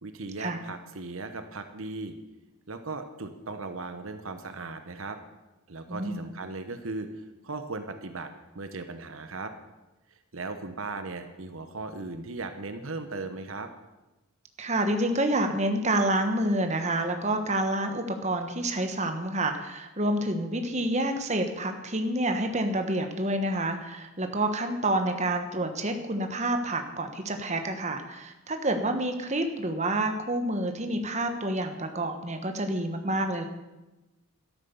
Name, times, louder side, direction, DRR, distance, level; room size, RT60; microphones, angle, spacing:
voice 1, 0.0-2.2 2.7-5.2 5.7-9.5 10.3-13.7, right 3 dB, 70° right, 8 dB, 1.0 m, -37 dB
voice 2, 5.9-6.2 14.6-33.4, right 1 dB, 30° right, 6 dB, 1.3 m, -28 dB
12.5 x 10.5 x 7.1 m, 1.1 s
head